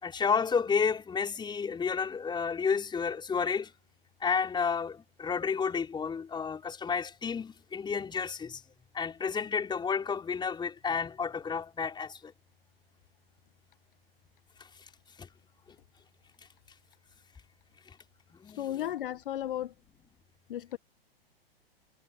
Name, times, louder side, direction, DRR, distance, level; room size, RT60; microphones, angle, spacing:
voice 1, 0.0-3.7 4.2-8.6 8.9-12.3 15.2-15.3 18.3-18.9, left 6 dB, 15° left, 5.3 m, -31 dB
voice 2, 18.5-19.7 20.5-20.8, left 12 dB, 60° left, 1.7 m, -34 dB
figure-of-eight pair, 105°, 30 cm